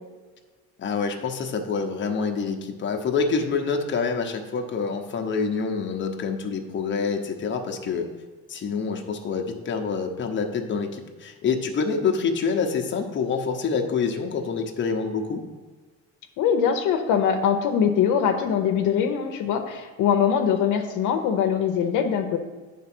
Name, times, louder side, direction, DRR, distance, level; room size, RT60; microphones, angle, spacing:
voice 1, 0.8-8.1 8.5-15.4, left 5 dB, 40° left, 3 dB, 0.9 m, -26 dB
voice 2, 16.4-22.4, left 8 dB, 75° left, 5 dB, 0.8 m, -22 dB
8.6 x 3.6 x 6.0 m, 1.3 s
cardioid pair, 110°, 31 cm